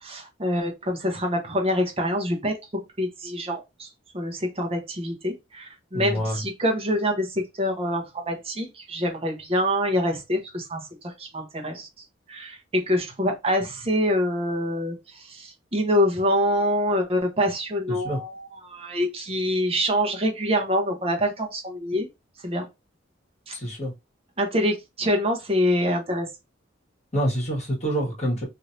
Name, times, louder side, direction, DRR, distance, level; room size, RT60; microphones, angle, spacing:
voice 1, 0.0-3.9 4.1-11.9 12.3-22.1 22.4-22.6 23.5-23.6 24.4-26.3, equal, 30° right, 0.9 m, -25 dB
voice 2, 5.9-6.4 17.9-18.2 23.5-23.9 27.1-28.4, equal, 35° left, 1.6 m, -27 dB
3.2 x 2.7 x 2.6 m
head